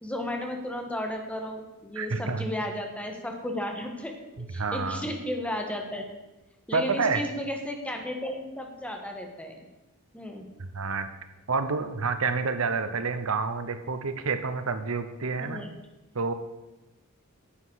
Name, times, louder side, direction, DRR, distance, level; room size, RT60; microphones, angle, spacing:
voice 1, 0.0-4.2 4.5-6.1 6.7-9.6 10.1-10.4 15.4-15.7, left 1 dB, 5° left, 3 dB, 1.5 m, -34 dB
voice 2, 1.9-2.5 4.4-5.1 6.7-7.2 10.6-11.1 11.5-15.6 16.1-16.3, right 4 dB, 80° right, 10 dB, 0.9 m, -29 dB
9.7 x 8.0 x 6.3 m, 1.0 s
head